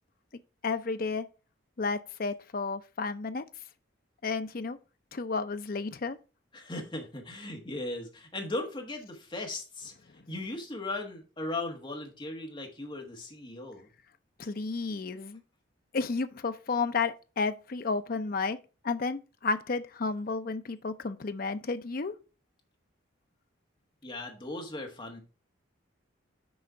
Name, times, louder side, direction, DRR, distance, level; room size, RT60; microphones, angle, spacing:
voice 1, 0.6-1.3 1.8-3.5 4.2-4.8 5.1-6.2 14.4-15.4 15.9-18.6 18.8-22.1, left 4 dB, 45° left, 0.5 m, -32 dB
voice 2, 6.5-13.9 24.0-25.2, left 2 dB, 25° left, 1.4 m, -38 dB
6.3 x 4.3 x 5.6 m
head